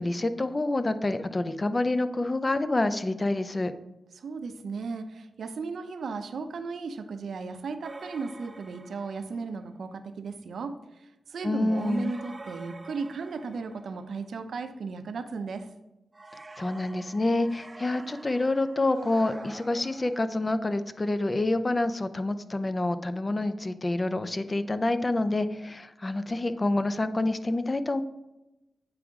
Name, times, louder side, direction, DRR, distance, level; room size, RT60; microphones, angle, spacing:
voice 1, 0.0-3.7 11.4-12.1 16.6-28.0, left 2 dB, 30° left, 11 dB, 0.5 m, -27 dB
voice 2, 4.1-15.7, right 4 dB, 80° right, 9 dB, 0.6 m, -35 dB
sound 1, 7.8-9.6 11.7-14.2 16.1-20.5, right 2 dB, 30° right, 0.7 m, -47 dB
8.7 x 4.8 x 3.6 m, 0.95 s
cardioid pair, 65°, 0 cm